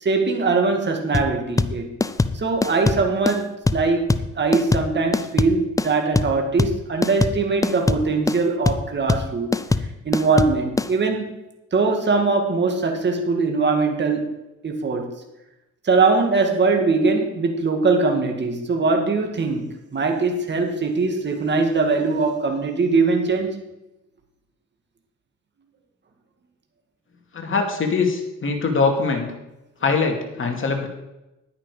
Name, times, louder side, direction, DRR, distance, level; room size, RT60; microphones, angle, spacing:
voice 1, 0.0-1.9 2.3-4.1 4.4-9.5 10.1-11.3 11.7-14.3 14.6-15.1 15.8-23.5, right 4 dB, 35° right, 3 dB, 2.2 m, -21 dB
sound 1, 1.1-10.9, left 3 dB, 10° left, 0.5 m, -22 dB
voice 2, 27.3-29.3 29.8-30.9, left 4 dB, 40° left, 2 dB, 2.5 m, -22 dB
10.5 x 9.9 x 5.1 m, 0.95 s
cardioid pair, 90°, 30 cm